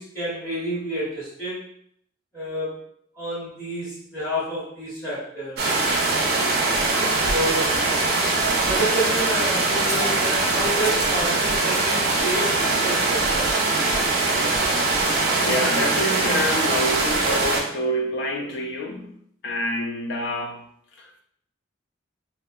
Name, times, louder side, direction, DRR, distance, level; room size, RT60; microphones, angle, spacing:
voice 1, 0.0-1.6 2.3-2.8 3.1-5.6 7.3-7.8 8.6-13.5, right 1 dB, 5° left, -13 dB, 0.9 m, -29 dB
sound 1, 5.6-17.6, right 3 dB, 50° right, 0.4 m, -22 dB
Liquid, 9.6-12.6, equal, 30° left, 0.9 m, -35 dB
voice 2, 15.4-19.2 19.4-20.6 20.9-21.2, equal, 60° left, 3 dB, 0.4 m, -27 dB
2.4 x 2.1 x 2.4 m, 0.68 s
head